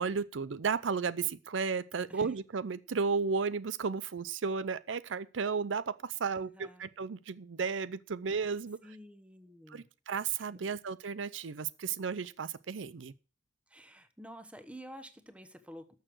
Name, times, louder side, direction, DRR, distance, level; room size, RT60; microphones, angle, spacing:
voice 1, 0.0-8.8 9.7-13.1, right 5 dB, 80° right, 0.5 m, -34 dB
voice 2, 6.2-6.9 8.8-9.8 10.5-10.7 13.7-15.9, equal, 5° right, 1.1 m, -50 dB
12.0 x 6.8 x 6.3 m
head